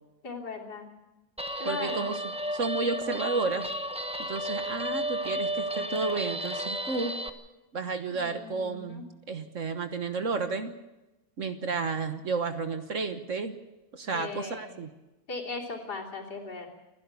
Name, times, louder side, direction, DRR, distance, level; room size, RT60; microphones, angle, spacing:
voice 1, 0.2-0.9 1.6-2.0 8.1-9.1 14.1-14.7 15.3-16.7, left 4 dB, 70° left, -1 dB, 3.9 m, -38 dB
Guitar, 1.4-7.3, equal, 5° right, 0.6 m, -33 dB
voice 2, 1.6-2.2 2.5-3.7 4.2-7.2 7.7-10.7 11.4-13.6 13.9-14.9, right 4 dB, 50° right, 8 dB, 1.5 m, -32 dB
28.0 x 11.0 x 8.2 m, 1.0 s
omnidirectional pair, 1.8 m